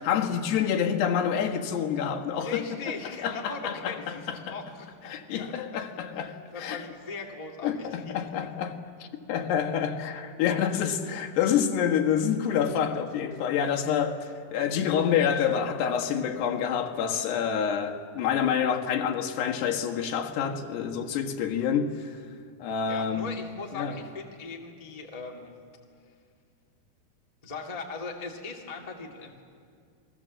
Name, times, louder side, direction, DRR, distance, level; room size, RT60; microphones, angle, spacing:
voice 1, 0.0-2.7 3.2-4.6 5.1-6.8 7.6-8.8 9.3-22.1 22.6-23.3 23.7-24.0, left 8 dB, 85° left, 3.7 m, -27 dB
voice 2, 2.3-5.8 6.5-8.2 22.9-25.5 27.4-29.4, left 4 dB, 15° left, 1.3 m, -39 dB
29.0 x 22.0 x 7.6 m
omnidirectional pair, 4.7 m